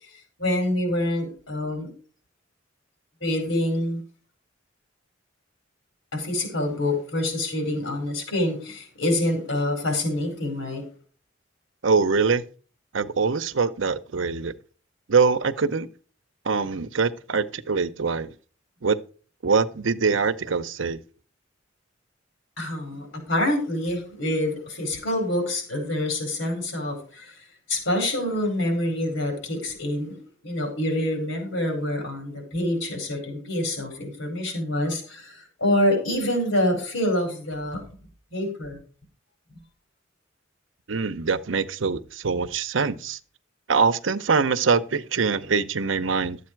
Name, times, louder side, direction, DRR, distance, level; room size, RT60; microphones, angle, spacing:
voice 1, 0.4-1.9 3.2-4.0 6.1-10.8 22.6-27.3 27.7-30.1 30.4-37.8 38.3-38.8, left 1 dB, 90° left, 4.8 m, -26 dB
voice 2, 11.8-12.4 12.9-14.5 15.1-15.9 16.5-18.3 18.8-19.0 19.4-21.0 40.9-43.2 43.7-46.4, right 5 dB, 80° right, 0.7 m, -23 dB
12.0 x 8.2 x 4.6 m
head